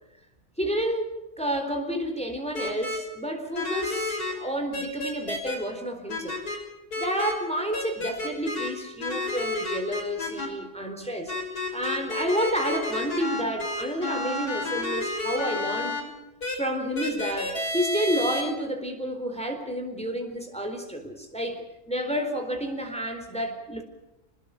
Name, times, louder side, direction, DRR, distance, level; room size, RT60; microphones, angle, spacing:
voice 1, 0.6-6.4 7.0-11.3 11.7-16.0 16.6-23.8, equal, 5° left, 3 dB, 4.0 m, -30 dB
sound 1, 2.5-3.0 3.5-4.3 4.7-5.6 6.1-6.6 6.9-7.3 7.7-8.7 9.0-10.5 11.3-16.0 16.4-16.6 17.0-18.4, left 2 dB, 90° left, 6.8 m, -30 dB
28.5 x 20.5 x 6.7 m, 0.94 s
omnidirectional pair, 1.6 m